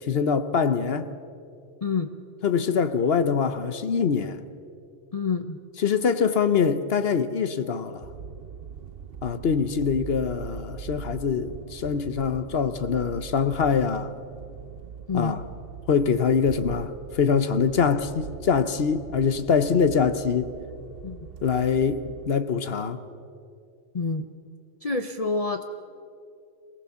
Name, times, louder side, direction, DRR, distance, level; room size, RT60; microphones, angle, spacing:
voice 1, 0.0-1.1 2.4-4.4 5.8-8.0 9.2-14.1 15.1-15.4 15.9-20.5 21.4-23.0, left 6 dB, 55° left, 1.0 m, -24 dB
voice 2, 1.8-2.1 5.1-5.6 15.1-15.3 21.0-21.2 23.9-24.3 24.8-25.6, left 4 dB, 35° left, 0.7 m, -27 dB
sound 1, 8.0-22.3, right 7 dB, 55° right, 0.8 m, -42 dB
23.5 x 18.0 x 7.0 m
omnidirectional pair, 1.3 m